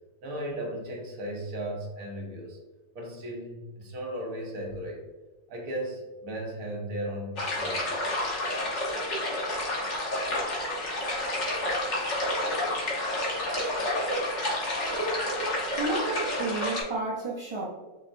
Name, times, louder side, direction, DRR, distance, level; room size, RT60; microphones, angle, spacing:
voice 1, 0.2-2.6 2.9-5.1 5.5-7.9, right 1 dB, 90° right, 0 dB, 1.5 m, -36 dB
sound 1, 7.4-16.8, left 1 dB, 55° left, 1.4 m, -29 dB
voice 2, 15.8-17.7, right 3 dB, 50° right, -5 dB, 0.3 m, -31 dB
5.5 x 3.2 x 2.5 m, 1.2 s
omnidirectional pair, 1.5 m